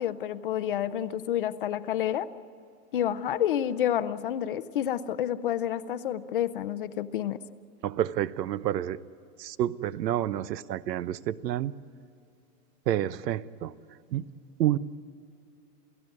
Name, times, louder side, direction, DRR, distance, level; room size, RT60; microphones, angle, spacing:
voice 1, 0.0-2.3 2.9-7.4, left 10 dB, 35° left, 13 dB, 0.5 m, -29 dB
voice 2, 7.8-9.0 9.4-11.7 12.9-13.7 14.1-14.2 14.6-14.8, right 12 dB, 85° right, 17 dB, 1.0 m, -29 dB
28.5 x 16.5 x 9.7 m, 2.6 s
supercardioid pair, 170°, 48 cm